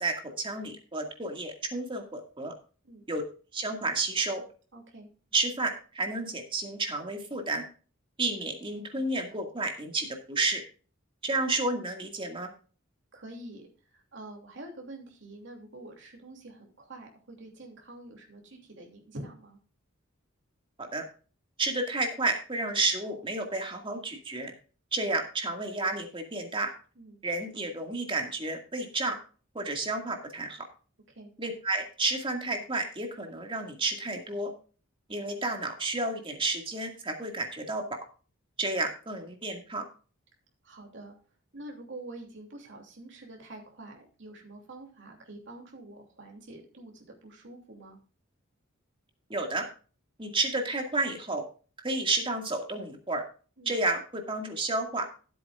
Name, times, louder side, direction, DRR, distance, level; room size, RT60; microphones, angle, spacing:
voice 1, 0.0-2.5 3.1-3.2 3.5-4.4 5.3-7.6 8.2-10.6 11.2-12.5 20.8-21.0 21.6-24.5 24.9-26.7 27.2-29.2 29.5-30.7 31.4-34.5 35.1-38.0 38.6-39.8 49.3-49.7 50.2-51.4 51.8-53.2 53.7-55.1, right 2 dB, 25° right, 3 dB, 2.1 m, -31 dB
voice 2, 4.7-5.1 13.1-13.7 13.9-19.6 27.0-27.2 31.1-31.3 40.6-41.1 41.5-48.0 53.6-53.7, right 2 dB, 60° right, 1 dB, 2.9 m, -46 dB
15.0 x 8.7 x 2.5 m, 0.36 s
head